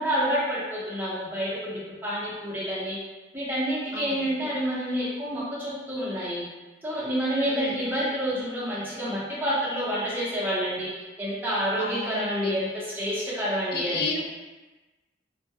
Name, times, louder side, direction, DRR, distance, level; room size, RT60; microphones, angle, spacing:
voice 1, 0.0-3.0 3.3-6.4 6.8-10.9 11.2-14.1, equal, 10° right, -9 dB, 0.6 m, -28 dB
voice 2, 3.9-4.5 7.5-7.9 11.8-12.5 13.7-14.2, left 4 dB, 55° left, 1 dB, 0.3 m, -32 dB
2.2 x 2.1 x 2.6 m, 1.2 s
head